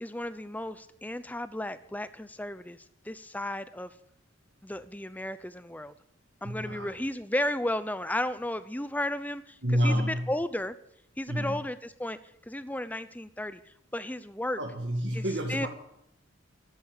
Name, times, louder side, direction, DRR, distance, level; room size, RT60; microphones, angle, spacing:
voice 1, 0.0-3.9 4.6-5.9 6.4-10.8 11.2-12.2 12.5-14.6 15.1-15.2 15.5-15.7, left 1 dB, 10° left, 13 dB, 0.7 m, -34 dB
voice 2, 6.4-6.9 9.6-10.3 11.3-11.6 14.6-15.7, equal, 55° right, 0 dB, 2.2 m, -29 dB
13.5 x 11.5 x 9.0 m, 0.79 s
head